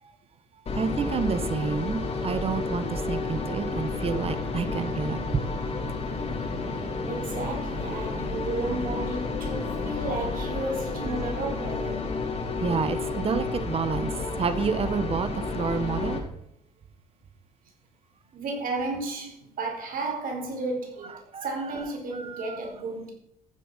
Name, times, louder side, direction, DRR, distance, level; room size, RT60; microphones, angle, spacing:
sound 1, 0.7-16.2, left 3 dB, 40° left, 2.9 m, -31 dB
voice 1, 0.8-5.2 12.6-14.1 14.4-15.3 15.5-16.2 21.3-21.4 22.3-22.4, right 6 dB, 35° right, 11 dB, 1.3 m, -29 dB
voice 2, 7.0-12.1 18.3-23.1, right 2 dB, 55° right, 1 dB, 4.6 m, -33 dB
14.0 x 7.8 x 5.7 m, 0.75 s
cardioid pair, 110°, 17 cm